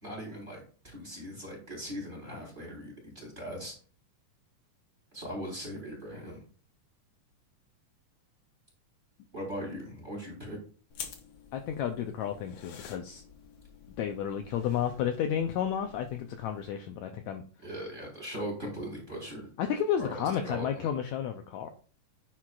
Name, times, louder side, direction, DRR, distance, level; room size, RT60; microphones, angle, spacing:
voice 1, 0.0-3.7 5.1-6.4 9.3-10.6 17.6-19.5 20.0-20.9, equal, 15° right, -2 dB, 3.3 m, -39 dB
sound 1, 10.9-16.7, left 7 dB, 60° left, 1.9 m, -49 dB
voice 2, 11.5-13.2 14.0-17.4 19.6-21.7, left 9 dB, 80° left, 5 dB, 1.7 m, -32 dB
10.0 x 6.1 x 2.4 m, 0.41 s
omnidirectional pair, 3.8 m